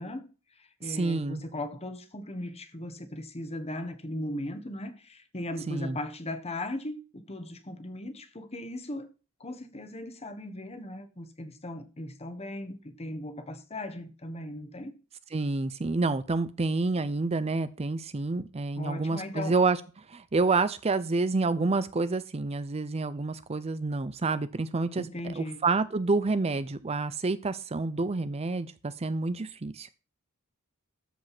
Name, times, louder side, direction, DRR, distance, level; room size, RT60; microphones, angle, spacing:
voice 1, 0.0-9.1 9.4-14.9 18.8-19.6 25.0-25.6, left 1 dB, 30° left, 1.4 m, -38 dB
voice 2, 0.8-1.4 5.7-6.0 15.3-29.9, right 3 dB, 30° right, 0.5 m, -28 dB
13.5 x 5.2 x 5.9 m
head